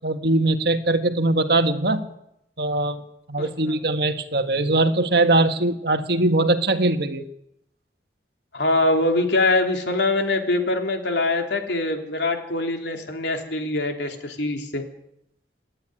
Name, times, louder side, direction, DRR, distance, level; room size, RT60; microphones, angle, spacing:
voice 1, 0.0-2.1 2.6-3.0 3.3-7.3, right 2 dB, 60° right, 7 dB, 1.6 m, -21 dB
voice 2, 8.5-14.8, left 2 dB, 75° left, 3 dB, 3.5 m, -23 dB
27.5 x 10.5 x 9.9 m, 0.81 s
head